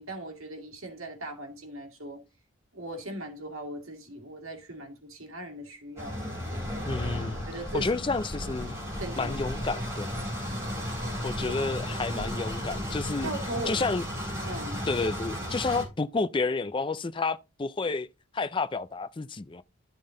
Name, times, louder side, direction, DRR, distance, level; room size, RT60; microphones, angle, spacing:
voice 1, 0.0-2.2 2.7-6.2 7.5-7.9 9.0-9.3 11.5-11.6 12.1-12.4 13.2-13.9 14.4-14.9, right 1 dB, 80° right, 2.2 m, -39 dB
sound 1, 6.0-15.8, equal, 15° right, 4.0 m, -34 dB
voice 2, 6.9-7.5 7.7-8.8 9.2-10.2 11.2-13.3 13.7-14.0 14.9-18.1 18.3-19.6, left 3 dB, 25° left, 0.4 m, -30 dB
12.0 x 5.5 x 3.8 m
head